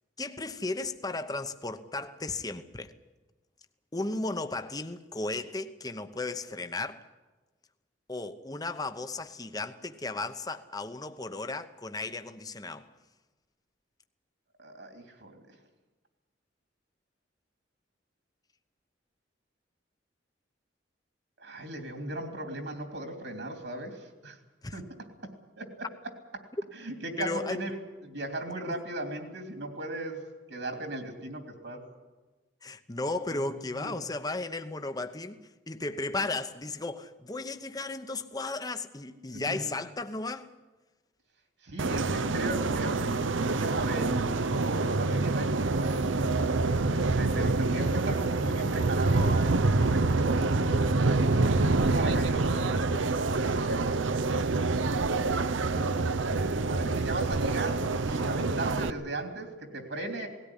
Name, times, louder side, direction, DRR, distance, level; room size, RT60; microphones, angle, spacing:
voice 1, 0.2-2.9 3.9-7.1 8.1-12.9 24.6-24.8 27.2-27.7 28.7-28.8 32.6-40.5, left 2 dB, 20° left, 0.9 m, -35 dB
voice 2, 14.6-15.6 21.4-24.4 24.7-24.9 25.2-25.3 25.6-25.9 26.3-26.4 26.7-27.8 28.0-30.2 30.5-31.8 33.3-33.4 33.8-33.9 39.3-39.8 41.6-46.2 46.9-53.9 54.3-54.5 55.6-60.3, right 1 dB, 65° right, 3.1 m, -37 dB
sound 1, 41.8-58.9, right 3 dB, 85° right, 0.7 m, -26 dB
18.5 x 17.0 x 10.0 m
head